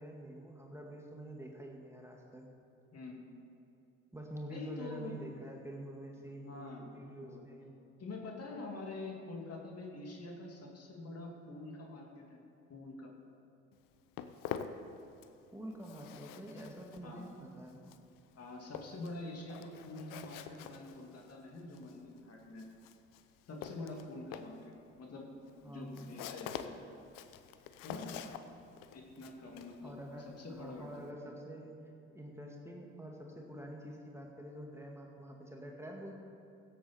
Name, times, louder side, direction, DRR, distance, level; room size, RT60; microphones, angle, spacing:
voice 1, 0.0-2.5 4.1-7.7 15.5-17.8 25.6-26.1 29.8-31.8 32.1-36.1, right 1 dB, 10° right, 0 dB, 2.0 m, -47 dB
voice 2, 4.5-5.1 6.4-7.4 8.0-12.4 12.7-13.1 17.0-17.3 18.4-22.7 23.5-25.3 25.7-26.8 27.8-28.3 28.9-31.0, left 2 dB, 45° left, 0 dB, 2.5 m, -46 dB
Walk footsteps, 13.7-15.5 15.7-31.1, left 9 dB, 65° left, 0.8 m, -47 dB
16.0 x 8.5 x 4.4 m, 2.7 s
hypercardioid pair, 60°, 34 cm